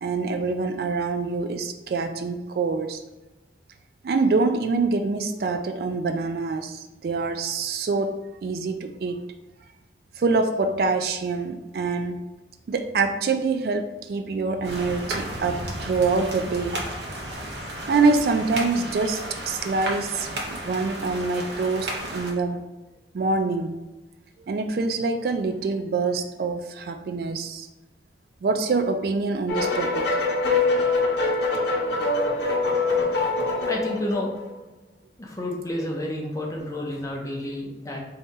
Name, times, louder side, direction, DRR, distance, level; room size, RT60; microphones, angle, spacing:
voice 1, 0.0-3.0 4.0-9.2 10.2-12.3 12.7-16.8 17.9-22.6 23.1-23.8 24.5-27.7 28.4-30.1 31.2-31.3, right 4 dB, 60° right, 7 dB, 0.3 m, -25 dB
sound 1, 14.6-22.3, right 1 dB, 75° right, 0.8 m, -33 dB
sound 2, 29.5-34.5, left 3 dB, 80° left, 0.8 m, -24 dB
voice 2, 33.7-34.3 35.2-38.0, left 1 dB, 20° left, -1 dB, 0.7 m, -30 dB
4.1 x 2.8 x 3.6 m, 1.1 s
head